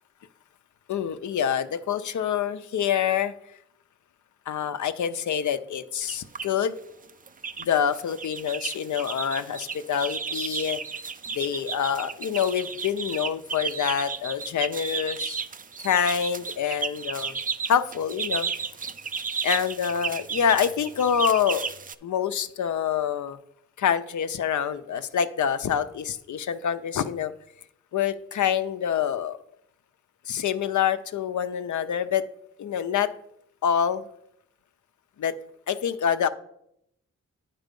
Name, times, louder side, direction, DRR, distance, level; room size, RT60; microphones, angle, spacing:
voice 1, 0.9-3.3 4.5-6.8 7.6-10.8 11.3-15.4 15.8-17.3 17.7-18.5 19.4-21.7 22.0-23.4 23.8-27.3 27.9-29.4 30.3-32.2 32.6-33.1 33.6-34.0 35.2-35.3 35.7-36.3, left 8 dB, 75° left, 11 dB, 0.5 m, -26 dB
sound 1, 6.0-6.5 7.0-7.7 7.9-21.9, right 5 dB, 30° right, 0.4 m, -33 dB
9.1 x 4.1 x 5.2 m, 0.76 s
cardioid pair, 65°, 30 cm